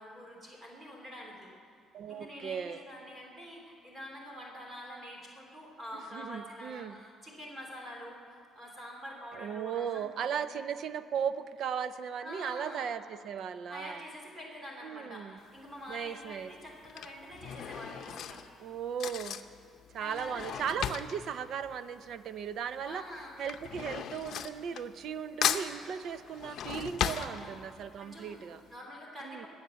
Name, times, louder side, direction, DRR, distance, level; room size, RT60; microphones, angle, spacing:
voice 1, 0.0-1.5 2.1-8.2 8.5-10.6 12.2-12.9 13.7-18.4 20.0-20.5 22.8-23.3 27.1-27.5 28.0-28.4 28.7-29.5, equal, 25° right, -1 dB, 3.1 m, -46 dB
voice 2, 1.9-2.8 6.1-7.0 9.3-14.0 14.8-15.4 15.9-16.5 18.6-19.4 19.9-23.0 23.4-28.6 29.2-29.5, right 7 dB, 60° right, 13 dB, 0.6 m, -37 dB
Drawer open or close / Cutlery silverware, 15.4-15.8 16.6-22.5 22.8-25.2 25.4-27.9 28.4-28.5 28.7-28.8, left 9 dB, 60° left, 0.7 m, -36 dB
22.5 x 8.9 x 7.0 m, 2.3 s
cardioid pair, 125°, 0 cm